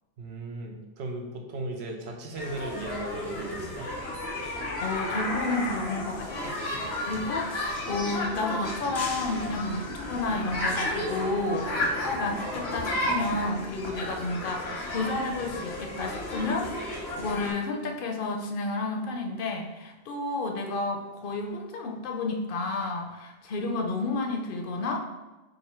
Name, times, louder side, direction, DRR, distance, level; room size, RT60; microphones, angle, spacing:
voice 1, 0.2-3.9, right 2 dB, 90° right, 2 dB, 1.0 m, -36 dB
sound 1, 2.3-17.5, left 1 dB, 85° left, 1.2 m, -33 dB
voice 2, 4.8-25.0, left 2 dB, 65° left, 3 dB, 0.7 m, -31 dB
3.8 x 2.6 x 4.2 m, 1.1 s
omnidirectional pair, 1.0 m